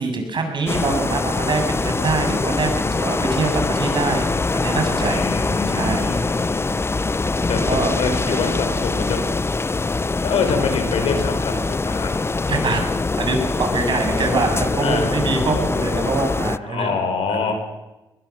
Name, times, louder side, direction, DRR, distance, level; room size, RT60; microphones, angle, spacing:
voice 1, 0.0-4.2 4.5-5.3 5.7-6.3 7.2-7.3 7.6-7.9 8.3-8.4 12.5-12.8 13.2-17.0 17.3-17.5, right 3 dB, 55° right, 4 dB, 7.4 m, -24 dB
sound 1, 0.7-16.6, left 3 dB, 25° left, 0.7 m, -23 dB
voice 2, 5.0-6.7 7.5-9.2 10.2-12.1 14.8-15.1 16.6-17.5, left 5 dB, 80° left, 6 dB, 5.0 m, -25 dB
21.0 x 20.5 x 7.5 m, 1.0 s
supercardioid pair, 55°, 10 cm